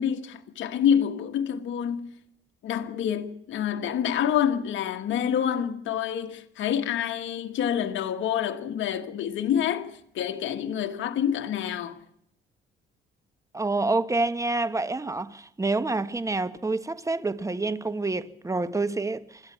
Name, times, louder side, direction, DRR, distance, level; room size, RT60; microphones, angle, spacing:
voice 1, 0.0-2.2 2.6-12.0, left 9 dB, 75° left, 1.5 m, -27 dB
voice 2, 13.5-19.4, right 3 dB, 15° right, 1.4 m, -27 dB
26.0 x 13.0 x 8.1 m
cardioid pair, 90°, 20 cm